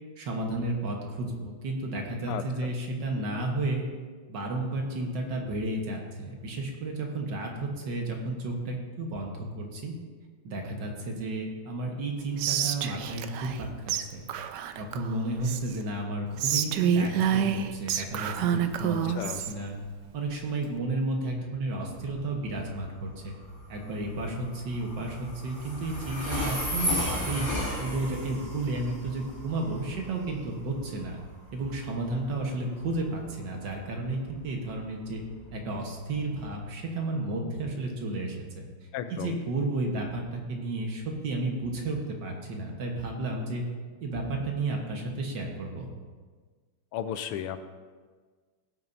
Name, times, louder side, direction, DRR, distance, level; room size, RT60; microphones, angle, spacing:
voice 1, 0.2-3.8 4.3-10.0 10.4-14.3 14.8-19.8 20.1-23.4 23.7-27.5 27.8-31.2 31.5-35.2 35.5-38.7 39.1-43.6 44.0-45.9, right 2 dB, 55° right, 1 dB, 1.8 m, -32 dB
voice 2, 2.3-2.7 19.2-19.4 38.9-39.4 46.9-47.7, left 9 dB, 85° left, 10 dB, 1.6 m, -34 dB
Whispering, 12.4-13.6 13.9-14.0 14.3-15.8 16.4-19.5, right 8 dB, 80° right, 0.9 m, -28 dB
Train, 21.9-36.6, left 1 dB, 10° left, 3.2 m, -36 dB
16.5 x 8.7 x 2.7 m, 1.5 s
omnidirectional pair, 2.4 m